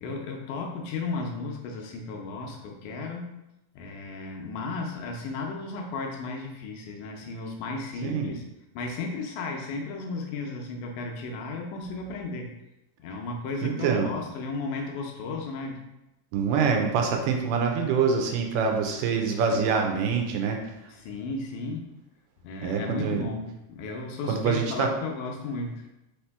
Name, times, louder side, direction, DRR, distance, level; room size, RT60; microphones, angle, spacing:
voice 1, 0.0-3.3 3.8-8.4 8.8-12.5 13.0-15.8 20.9-21.9 22.4-25.9, left 3 dB, 80° left, 1 dB, 1.9 m, -34 dB
voice 2, 13.6-14.1 16.3-20.6 22.6-23.2 24.3-24.9, right 5 dB, 90° right, 3 dB, 2.2 m, -25 dB
5.1 x 2.8 x 3.3 m, 0.92 s
omnidirectional pair, 3.8 m